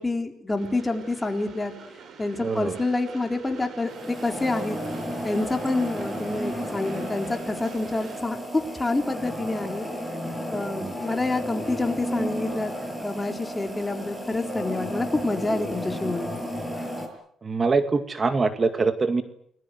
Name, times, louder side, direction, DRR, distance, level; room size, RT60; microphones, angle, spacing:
voice 1, 0.0-1.7 2.2-3.9 4.2-4.8 5.2-9.9 10.5-12.7 13.0-16.4, left 2 dB, 15° left, 5 dB, 4.0 m, -27 dB
Train, 0.6-8.2, right 5 dB, 60° right, 6.0 m, -45 dB
voice 2, 2.4-2.8 10.8-10.9 17.4-19.2, right 4 dB, 35° right, 9 dB, 2.1 m, -24 dB
sound 1, 3.8-17.1, equal, 10° right, 7.3 m, -33 dB
29.5 x 21.0 x 7.9 m, 0.69 s
cardioid pair, 90°, 0 cm